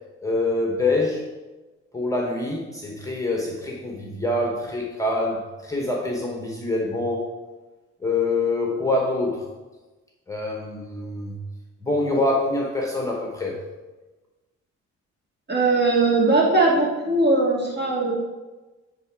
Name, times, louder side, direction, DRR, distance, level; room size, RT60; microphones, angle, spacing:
voice 1, 0.2-1.2 1.9-7.3 8.0-9.5 10.3-11.4 11.8-13.6, left 2 dB, 10° left, 0 dB, 1.1 m, -25 dB
voice 2, 15.5-18.1, right 2 dB, 35° right, -3 dB, 2.6 m, -20 dB
9.6 x 3.8 x 4.7 m, 1.2 s
cardioid pair, 90°, 30 cm